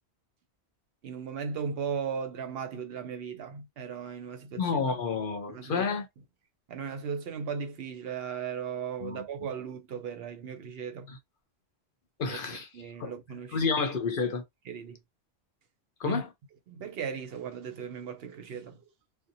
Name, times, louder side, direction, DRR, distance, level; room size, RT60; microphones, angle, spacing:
voice 1, 1.0-5.0 5.5-5.9 6.7-11.1 12.3-12.4 12.7-13.6 14.7-15.0 16.0-16.2 16.7-18.8, right 6 dB, 70° right, 0.8 m, -37 dB
voice 2, 4.6-6.1 9.0-9.2 11.1-11.2 12.2-12.7 13.0-13.1 13.5-14.4 16.0-16.3, left 5 dB, 60° left, 0.8 m, -30 dB
2.7 x 2.1 x 2.6 m
omnidirectional pair, 1.1 m